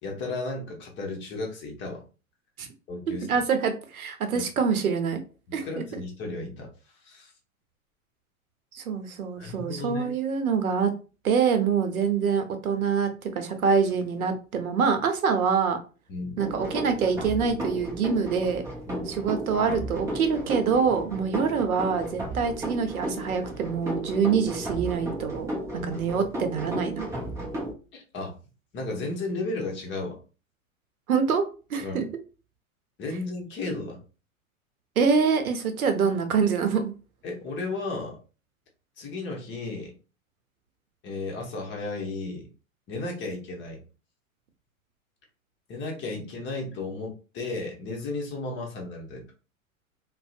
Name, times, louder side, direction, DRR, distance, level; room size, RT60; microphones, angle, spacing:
voice 1, 0.0-2.0 2.9-3.3 4.3-4.4 5.5-6.7 7.0-7.3 9.4-10.1 16.1-16.4 18.9-19.2 25.8-26.0 27.9-28.4 28.7-30.2 31.8-32.0 33.0-34.0 37.2-38.2 39.0-39.9 41.0-42.5 42.9-43.8 45.7-49.2, left 2 dB, 25° left, 1 dB, 0.8 m, -34 dB
voice 2, 3.3-5.2 5.5-5.8 8.7-10.9 11.2-15.8 16.4-18.6 19.1-27.1 31.1-32.0 35.0-36.9 46.1-46.2, right 6 dB, 90° right, 7 dB, 0.7 m, -25 dB
sound 1, 16.4-27.7, right 1 dB, 10° right, 0.4 m, -34 dB
2.6 x 2.0 x 2.4 m, 0.34 s
hypercardioid pair, 105°, 42 cm